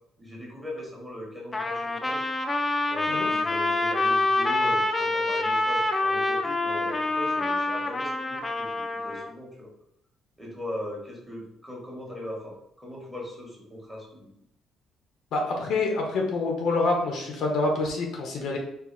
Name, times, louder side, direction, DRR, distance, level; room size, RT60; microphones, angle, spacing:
voice 1, 0.2-2.2 2.9-8.7 9.0-9.7 10.4-14.3, left 1 dB, 5° right, -4 dB, 1.4 m, -39 dB
Trumpet, 1.5-9.3, left 2 dB, 20° left, 0.4 m, -26 dB
voice 2, 15.3-18.6, left 3 dB, 65° left, 1 dB, 1.1 m, -26 dB
4.6 x 2.7 x 4.0 m, 0.76 s
cardioid pair, 155°, 0 cm